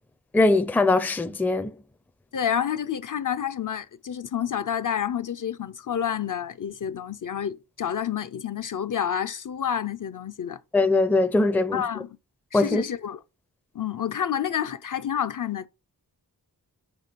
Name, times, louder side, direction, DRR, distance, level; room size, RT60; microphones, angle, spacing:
voice 1, 0.3-1.7 10.7-11.8 12.5-12.8, left 2 dB, 5° left, 0.4 m, -21 dB
voice 2, 2.3-10.6 11.7-12.1 12.5-13.2 13.7-15.7, left 8 dB, 50° left, 0.5 m, -29 dB
6.0 x 3.6 x 5.1 m
wide cardioid pair, 95°, 39 cm